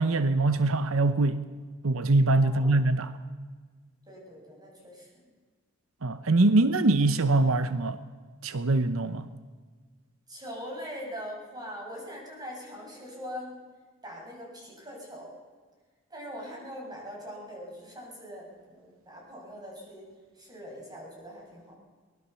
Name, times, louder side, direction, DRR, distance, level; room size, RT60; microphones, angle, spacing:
voice 1, 0.0-1.5 1.8-3.1 6.0-8.0 8.4-9.3, right 2 dB, 85° right, 12 dB, 0.9 m, -23 dB
voice 2, 2.4-2.8 4.1-5.2 10.3-13.5 14.0-15.3 16.1-20.0 20.4-21.8, equal, 20° right, -1 dB, 7.3 m, -42 dB
23.5 x 20.0 x 7.0 m, 1.5 s
head